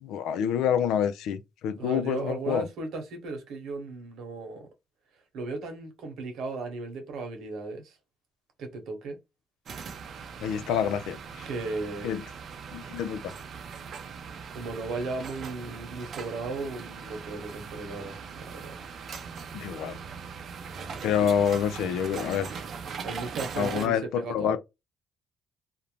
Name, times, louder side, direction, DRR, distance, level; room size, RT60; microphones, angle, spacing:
voice 1, 0.0-2.6 10.4-11.4 12.0-12.2 12.7-13.3 19.5-20.0 21.0-22.5 23.6-24.0 24.3-24.6, left 8 dB, 90° left, 0.3 m, -27 dB
voice 2, 1.8-4.7 5.3-8.0 8.6-9.2 11.4-12.2 14.5-18.7 23.0-24.6, right 3 dB, 80° right, 1.0 m, -36 dB
sound 1, 9.7-23.9, right 6 dB, 60° right, 0.5 m, -40 dB
2.5 x 2.1 x 2.9 m
cardioid pair, 90°, 0 cm